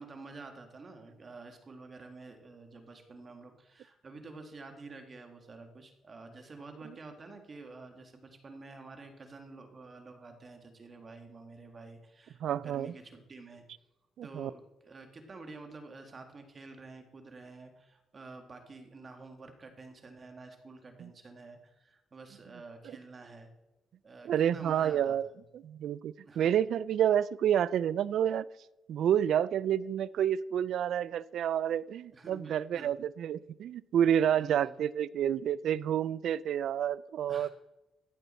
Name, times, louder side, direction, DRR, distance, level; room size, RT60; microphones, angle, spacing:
voice 1, 0.0-13.6 14.2-23.5 24.0-25.4 26.2-26.5 32.1-32.9 34.4-34.7 37.3-37.5, right 3 dB, 35° right, 5 dB, 1.8 m, -49 dB
voice 2, 12.4-12.9 14.2-14.5 21.0-21.1 24.3-25.3 25.6-28.4 28.9-37.5, right 9 dB, 70° right, 20 dB, 0.3 m, -29 dB
14.5 x 8.1 x 4.3 m, 0.96 s
cardioid pair, 90°, 0 cm